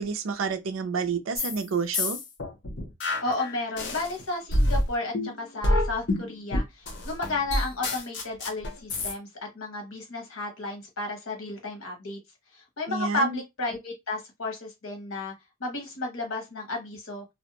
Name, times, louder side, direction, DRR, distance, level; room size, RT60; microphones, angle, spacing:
voice 1, 0.0-2.2 12.9-13.4, right 5 dB, 75° right, 0.4 m, -29 dB
sound 1, 1.3-1.6 1.9-4.1 4.5-9.1, left 1 dB, 55° left, 0.6 m, -27 dB
voice 2, 3.2-9.3 9.5-12.2 12.5-15.3 15.6-17.2, left 2 dB, 85° left, 1.0 m, -33 dB
2.4 x 2.1 x 2.8 m
head